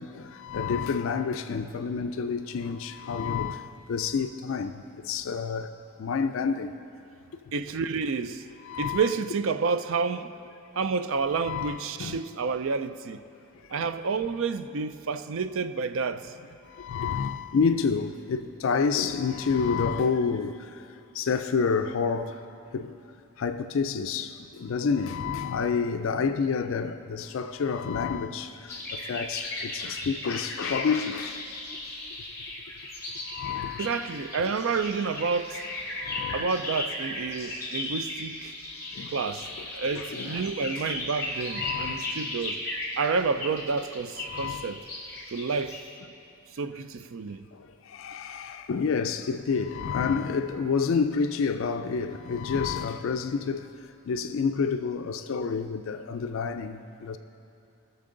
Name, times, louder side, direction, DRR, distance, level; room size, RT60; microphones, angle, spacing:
voice 1, 0.0-5.7 6.0-6.7 8.7-9.0 11.4-12.2 16.7-20.6 21.2-22.4 22.7-22.9 23.4-28.5 28.9-31.4 33.3-33.9 36.0-36.5 37.8-37.9 39.0-39.1 39.9-40.5 41.5-42.2 44.3-44.7 47.9-53.7 54.1-57.2, left 5 dB, 65° left, 0.4 m, -29 dB
voice 2, 7.5-8.4 8.8-10.3 10.8-13.2 13.7-16.3 33.8-35.6 36.3-38.5 39.1-39.5 39.7-42.6 43.0-44.8 45.3-45.8 46.6-47.4, right 5 dB, 65° right, 0.4 m, -29 dB
sound 1, 28.7-45.8, left 2 dB, 15° left, 2.3 m, -36 dB
20.0 x 6.8 x 3.8 m
head